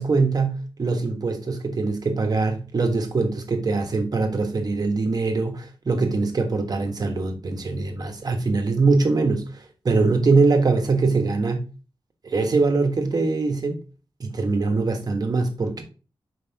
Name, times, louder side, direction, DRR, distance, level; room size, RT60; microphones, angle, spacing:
voice 1, 0.0-9.5 9.8-11.6 12.2-13.8 14.2-15.8, right 3 dB, 45° right, 1.3 m, -22 dB
6.2 x 4.8 x 3.5 m
wide cardioid pair, 135°, 9 cm